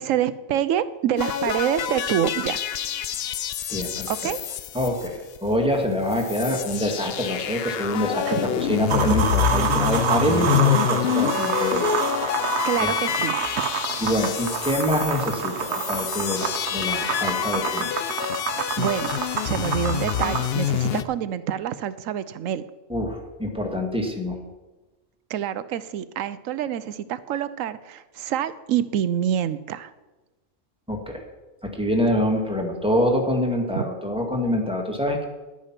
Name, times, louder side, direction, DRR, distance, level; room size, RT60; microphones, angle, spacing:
voice 1, 0.0-2.6 4.1-4.4 8.3-8.4 12.7-13.4 18.5-19.1 19.4-22.6 25.3-29.9 33.7-33.9, right 10 dB, 90° right, 15 dB, 1.0 m, -26 dB
sound 1, 1.2-5.6 5.8-5.9 6.1-21.0, left 10 dB, 60° left, 0.7 m, -27 dB
voice 2, 3.7-4.3 4.7-12.5 12.8-12.9 14.0-17.9 22.9-24.4 30.9-31.2 31.6-35.3, left 1 dB, 5° right, 1 dB, 1.6 m, -25 dB
sound 2, 8.9-20.5, right 6 dB, 60° right, 1.1 m, -28 dB
11.5 x 8.5 x 5.9 m, 1.1 s
omnidirectional pair, 1.3 m